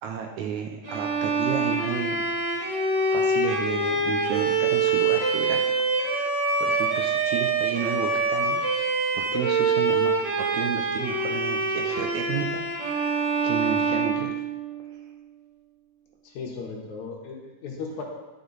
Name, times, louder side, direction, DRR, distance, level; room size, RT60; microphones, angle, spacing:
voice 1, 0.0-2.3 3.0-5.7 6.1-6.3 6.6-8.6 9.1-10.1 10.4-12.7 12.9-14.3, right 8 dB, 75° right, 3 dB, 1.8 m, -32 dB
Bowed string instrument, 0.8-14.9, right 3 dB, 45° right, 1.4 m, -25 dB
voice 2, 16.2-18.0, left 4 dB, 70° left, 0 dB, 2.3 m, -36 dB
11.0 x 5.3 x 3.9 m, 1.1 s
omnidirectional pair, 3.7 m